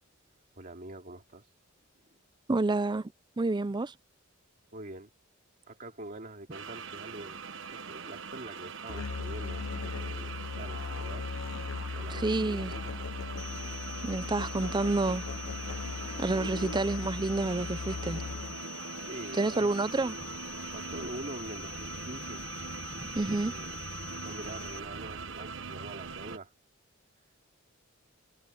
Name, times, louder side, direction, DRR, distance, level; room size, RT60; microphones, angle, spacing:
voice 1, 0.6-1.5 2.0-2.1 4.7-5.1 5.7-7.4 7.7-11.3 11.9-12.9 18.8-19.7 20.7-22.5 23.4-23.8 24.1-26.5, right 2 dB, 45° right, 2.7 m, -45 dB
voice 2, 2.5-3.1 3.4-3.9 12.1-12.7 14.0-15.3 16.2-18.2 19.3-20.2 23.0-23.5, right 2 dB, 20° right, 0.5 m, -29 dB
sound 1, 6.5-26.4, right 5 dB, 65° right, 1.4 m, -42 dB
Musical instrument, 8.9-18.7, left 4 dB, 75° left, 0.7 m, -38 dB
sound 2, 13.4-24.8, left 10 dB, 35° left, 3.6 m, -46 dB
head